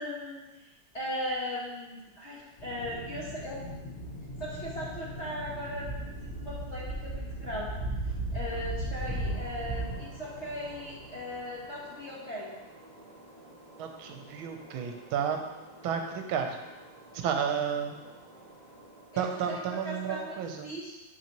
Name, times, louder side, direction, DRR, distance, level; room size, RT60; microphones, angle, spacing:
voice 1, 0.0-3.6 4.4-7.7 8.0-12.5 19.1-20.4 20.6-21.0, equal, 40° left, -7 dB, 1.2 m, -38 dB
Aircraft, 2.6-12.0, equal, 75° left, 0.5 m, -42 dB
sound 1, 4.3-5.4 5.8-9.9, right 2 dB, 10° left, 2.1 m, -35 dB
sound 2, 8.9-20.0, right 1 dB, 25° right, 2.3 m, -52 dB
voice 2, 13.8-15.4 15.8-16.6 17.1-18.0 19.2-20.7, right 7 dB, 75° right, 4 dB, 1.5 m, -32 dB
7.0 x 5.7 x 3.0 m, 1.1 s
omnidirectional pair, 2.4 m